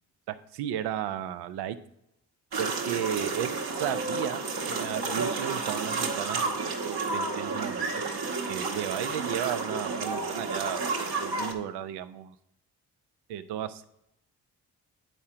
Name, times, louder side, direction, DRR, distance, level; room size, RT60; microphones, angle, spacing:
voice 1, 0.3-1.8 2.6-4.4 4.7-7.9 8.5-12.3 13.3-13.8, right 10 dB, 90° right, 11 dB, 0.6 m, -34 dB
sound 1, 2.5-11.5, right 3 dB, 70° right, 1.3 m, -31 dB
9.1 x 4.4 x 4.8 m, 0.80 s
supercardioid pair, 55°, 39 cm